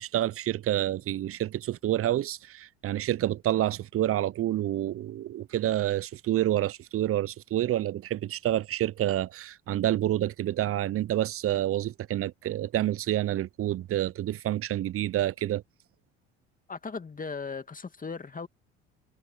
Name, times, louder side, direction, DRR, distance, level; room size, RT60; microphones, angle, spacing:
voice 1, 0.0-15.6, right 13 dB, 40° right, 0.7 m, -28 dB
voice 2, 16.7-18.5, left 4 dB, 25° left, 2.2 m, -37 dB
hypercardioid pair, 70°, 34 cm